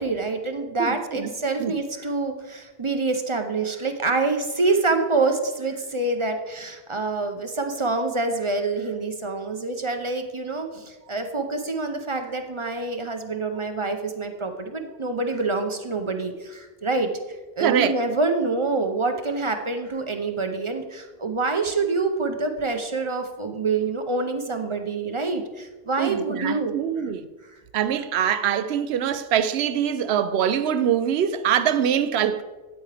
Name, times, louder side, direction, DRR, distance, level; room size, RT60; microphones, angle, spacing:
voice 1, 0.0-26.8, right 3 dB, 35° right, 0.6 m, -26 dB
voice 2, 0.8-1.3 1.6-1.7 17.6-18.0 26.0-27.3 27.7-32.4, right 9 dB, 80° right, 0.8 m, -23 dB
9.1 x 8.3 x 3.3 m
omnidirectional pair, 1.1 m